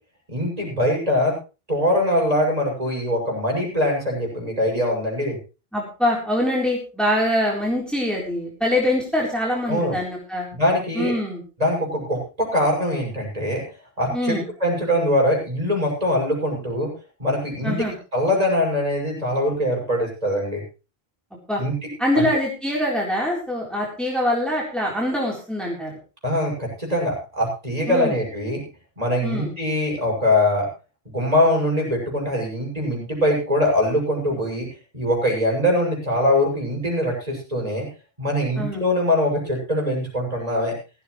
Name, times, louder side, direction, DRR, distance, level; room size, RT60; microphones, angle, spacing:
voice 1, 0.3-1.3 1.7-5.4 9.7-10.0 10.5-11.1 11.6-13.6 14.0-14.4 14.6-16.9 17.2-17.8 18.1-20.6 21.6-21.7 22.2-22.3 26.2-28.6 29.0-30.7 31.1-34.7 34.9-37.9 38.2-40.7, left 1 dB, 35° right, -1 dB, 7.1 m, -22 dB
voice 2, 5.7-10.5 10.9-11.4 14.1-14.5 17.6-17.9 21.5-21.6 22.0-25.9 27.9-28.2 29.2-29.5 38.6-38.8, left 1 dB, ahead, -3 dB, 4.0 m, -24 dB
17.0 x 15.5 x 3.3 m, 0.32 s
omnidirectional pair, 1.1 m